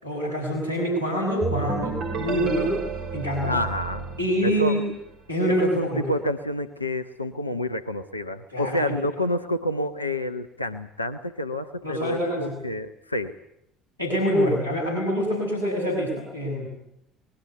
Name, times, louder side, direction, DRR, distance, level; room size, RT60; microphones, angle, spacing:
voice 1, 0.0-2.8 3.1-3.5 4.2-4.8 5.3-6.0 8.5-9.0 11.8-12.6 14.0-16.7, equal, 85° right, 0 dB, 6.3 m, -25 dB
sound 1, 1.4-5.1, right 3 dB, 55° right, 5.6 m, -31 dB
voice 2, 3.5-4.1 4.4-4.8 5.5-13.4, equal, 90° left, 9 dB, 0.9 m, -28 dB
25.0 x 21.5 x 8.1 m, 0.79 s
figure-of-eight pair, 55°, 0 cm